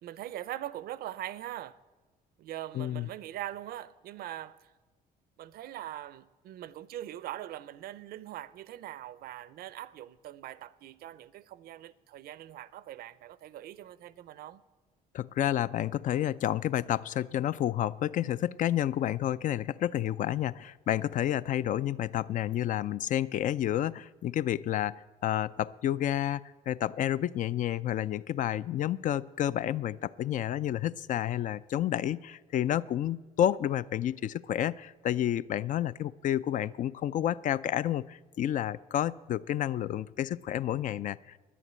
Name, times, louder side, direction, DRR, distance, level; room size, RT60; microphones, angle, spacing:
voice 1, 0.0-1.8 2.4-4.7 5.4-14.6, right 13 dB, 65° right, 0.5 m, -42 dB
voice 2, 2.7-3.1 15.1-41.4, left 11 dB, 50° left, 0.4 m, -30 dB
11.0 x 10.0 x 8.7 m
cardioid pair, 110°, 17 cm